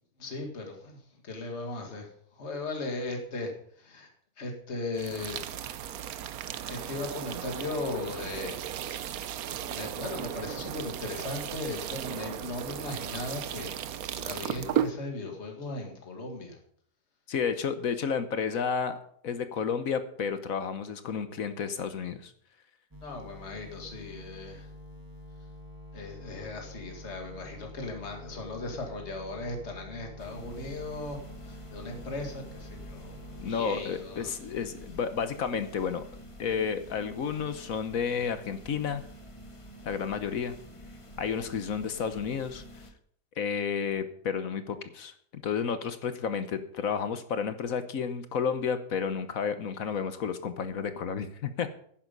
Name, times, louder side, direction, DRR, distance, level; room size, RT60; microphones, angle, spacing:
voice 1, 0.2-3.5 3.8-4.1 4.4-5.5 6.7-8.6 9.7-13.8 14.0-16.6 23.0-24.7 25.9-31.2 31.4-34.3, left 2 dB, 45° left, 2 dB, 2.3 m, -37 dB
sound 1, 5.0-14.9, right 10 dB, 70° right, 1.1 m, -35 dB
voice 2, 17.3-22.3 33.4-36.0 36.4-39.0 39.8-40.5 41.2-42.6 43.4-51.7, left 6 dB, 60° left, 10 dB, 1.3 m, -31 dB
sound 2, 22.9-33.5, left 1 dB, 15° right, 1.7 m, -47 dB
sound 3, 30.2-42.9, equal, 20° left, 1.1 m, -48 dB
11.0 x 10.0 x 5.3 m, 0.62 s
omnidirectional pair, 1.7 m